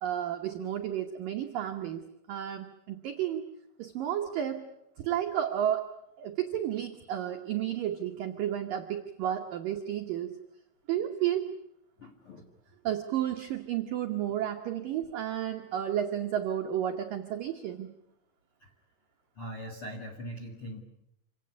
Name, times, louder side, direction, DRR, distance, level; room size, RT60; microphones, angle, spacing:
voice 1, 0.0-2.0 2.3-3.4 3.8-4.7 5.0-5.9 6.2-10.3 10.9-11.5 12.8-17.9, right 10 dB, 85° right, 4 dB, 1.9 m, -32 dB
voice 2, 12.0-12.4 18.6-18.7 19.4-20.8, equal, 50° left, 1 dB, 1.6 m, -41 dB
27.0 x 17.5 x 9.6 m, 0.83 s
omnidirectional pair, 5.8 m